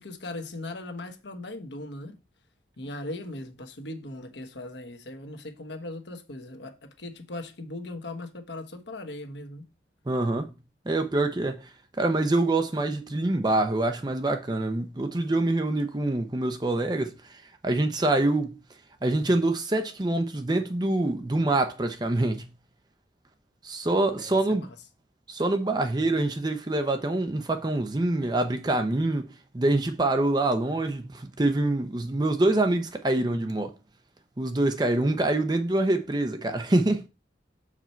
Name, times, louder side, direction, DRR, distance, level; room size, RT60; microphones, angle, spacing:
voice 1, 0.0-2.2 2.8-9.6 24.2-24.7, left 2 dB, 75° left, 1.2 m, -39 dB
voice 2, 10.1-10.5 10.9-11.7 12.0-18.6 19.0-22.5 23.6-24.6 25.3-33.7 34.4-37.0, right 2 dB, 20° right, 0.6 m, -25 dB
6.8 x 4.9 x 4.4 m
head